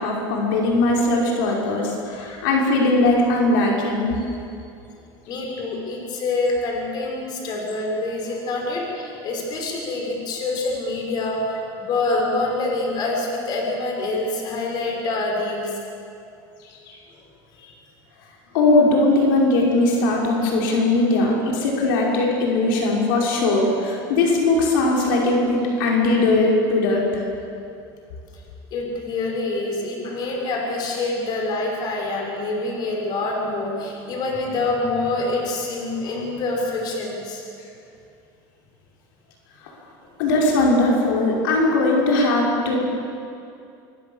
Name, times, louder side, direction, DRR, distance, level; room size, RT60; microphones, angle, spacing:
voice 1, 0.0-4.1 18.5-27.2 40.2-42.8, left 2 dB, 85° left, -1 dB, 5.4 m, -19 dB
voice 2, 5.3-15.8 17.6-17.8 28.7-37.4 40.0-40.1, left 2 dB, 40° left, 0 dB, 5.9 m, -26 dB
25.5 x 23.0 x 7.3 m, 2.5 s
cardioid pair, 150°, 11 cm